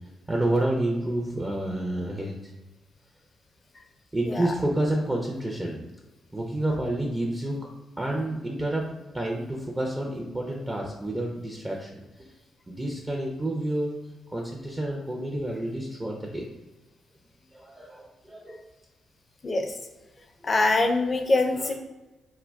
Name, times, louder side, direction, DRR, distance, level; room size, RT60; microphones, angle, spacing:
voice 1, 0.3-2.3 4.1-5.8 6.3-7.6 8.0-8.8 9.1-12.0 12.7-13.9 14.3-16.4 17.5-18.6 21.5-21.7, right 1 dB, 20° right, -1 dB, 0.5 m, -29 dB
voice 2, 20.4-21.7, left 2 dB, 40° left, 5 dB, 0.4 m, -23 dB
2.2 x 2.1 x 3.4 m, 1.1 s
hypercardioid pair, 45°, 0 cm